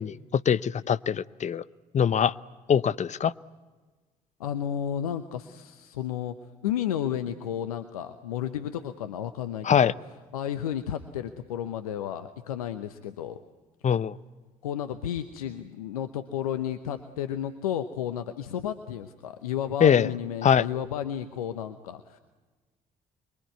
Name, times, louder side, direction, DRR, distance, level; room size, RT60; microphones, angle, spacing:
voice 1, 0.0-1.6 1.9-2.3 2.7-3.3 9.6-9.9 13.8-14.2 19.8-20.1 20.4-20.6, left 8 dB, 40° left, 17 dB, 0.8 m, -22 dB
voice 2, 4.4-6.3 6.6-9.9 10.3-13.4 14.6-22.2, left 10 dB, 85° left, 9 dB, 0.9 m, -32 dB
25.5 x 22.5 x 9.5 m, 1.3 s
hypercardioid pair, 50°, 18 cm